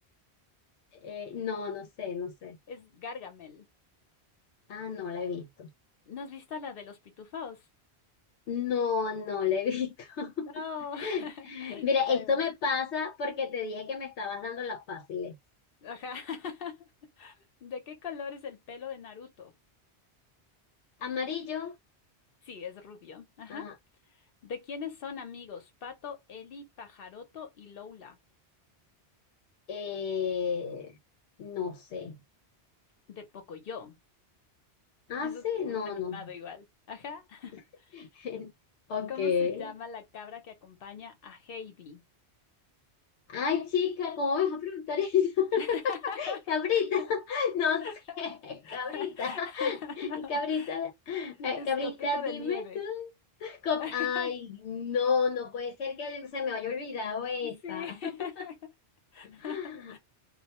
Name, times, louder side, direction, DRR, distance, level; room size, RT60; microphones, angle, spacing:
voice 1, 1.0-2.6 4.7-5.7 8.5-10.5 11.0-15.3 21.0-21.7 23.5-23.7 29.7-30.9 31.4-32.2 35.1-36.2 38.0-38.5 38.9-39.7 43.3-47.9 48.2-53.1 53.4-57.9 58.2-58.5 59.2-59.9, left 6 dB, 85° left, 0.9 m, -31 dB
voice 2, 2.7-3.6 6.1-7.6 10.4-12.4 15.8-16.9 17.2-19.5 22.4-23.7 24.4-28.2 33.1-34.0 35.2-37.6 37.9-38.1 39.1-42.0 45.6-46.4 46.7-47.1 47.8-48.2 48.6-50.8 51.4-52.8 53.8-54.3 57.4-58.7 59.1-60.0, left 6 dB, 60° left, 1.0 m, -41 dB
2.3 x 2.2 x 2.8 m
omnidirectional pair, 1.1 m